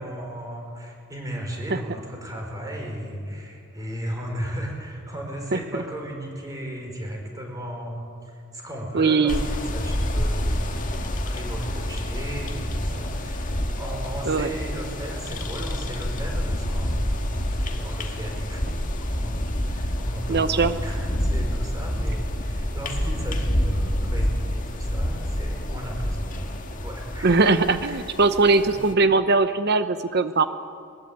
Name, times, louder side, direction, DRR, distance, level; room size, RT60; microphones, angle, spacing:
voice 1, 0.0-27.4 27.9-28.0 28.5-28.7, equal, 15° right, 1 dB, 5.1 m, -35 dB
voice 2, 8.9-9.4 14.3-14.5 20.3-20.7 27.2-30.4, right 3 dB, 50° right, 11 dB, 0.8 m, -20 dB
sound 1, 9.3-28.9, equal, 35° left, 1.8 m, -28 dB
21.5 x 20.5 x 8.8 m, 2.2 s
head